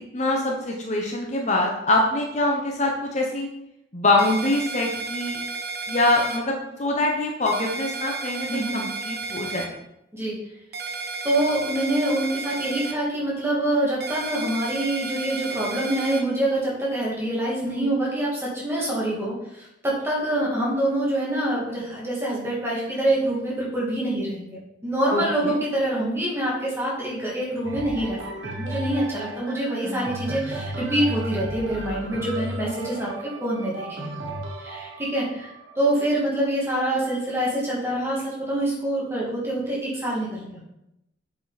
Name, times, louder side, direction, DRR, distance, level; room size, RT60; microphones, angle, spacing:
voice 1, 0.1-3.5 3.9-5.4 5.9-9.8 25.1-25.6, left 2 dB, 40° left, 0 dB, 0.9 m, -24 dB
sound 1, 4.2-6.4 7.5-9.7 10.7-12.9 14.0-16.2, right 4 dB, 55° right, 1.1 m, -32 dB
voice 2, 8.5-8.8 10.1-10.4 11.2-34.1 34.6-40.6, right 1 dB, 15° right, -5 dB, 2.2 m, -26 dB
sound 2, 27.6-37.4 38.1-38.2, right 1 dB, 80° right, 1.1 m, -34 dB
7.6 x 5.0 x 4.1 m, 0.85 s
head